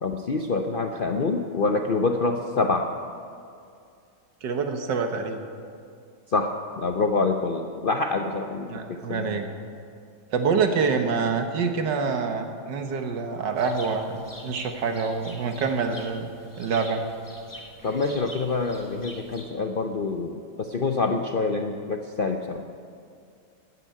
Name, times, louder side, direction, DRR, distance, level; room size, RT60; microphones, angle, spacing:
voice 1, 0.0-2.9 6.3-9.4 17.8-22.6, left 3 dB, 60° left, 5 dB, 0.5 m, -26 dB
voice 2, 4.4-5.5 8.7-9.5 10.3-16.3 16.6-17.0, right 5 dB, 80° right, 6 dB, 1.9 m, -26 dB
sound 1, 13.6-19.4, left 1 dB, 10° left, 1.3 m, -45 dB
14.0 x 9.3 x 9.1 m, 2.4 s
omnidirectional pair, 1.9 m